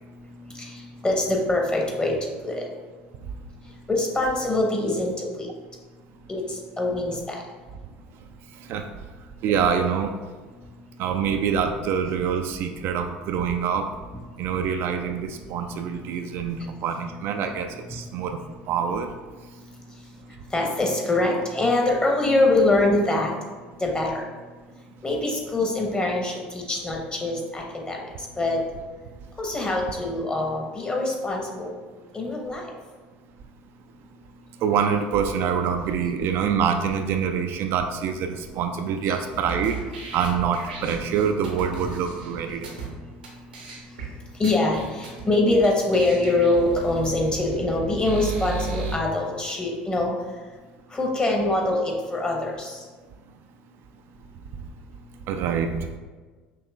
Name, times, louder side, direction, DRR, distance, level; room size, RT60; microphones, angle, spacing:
voice 1, 1.0-2.2 2.4-2.6 3.9-5.5 6.3-6.4 6.8-7.3 20.5-23.3 23.8-24.2 25.0-28.0 28.4-28.6 29.4-31.7 32.1-32.7 44.4-50.1 50.9-52.8, left 2 dB, 20° left, 0 dB, 1.0 m, -24 dB
voice 2, 9.4-10.1 11.0-13.9 14.4-18.4 18.7-19.1 34.6-39.8 40.1-42.9 55.3-55.8, right 7 dB, 55° right, 6 dB, 0.3 m, -25 dB
sound 1, 39.3-42.9 43.2-43.3 43.5-44.1 44.4-45.2 45.6-45.7 45.9-48.9, right 5 dB, 90° right, 0.9 m, -35 dB
5.7 x 2.9 x 2.3 m, 1.4 s
hypercardioid pair, 70°, 5 cm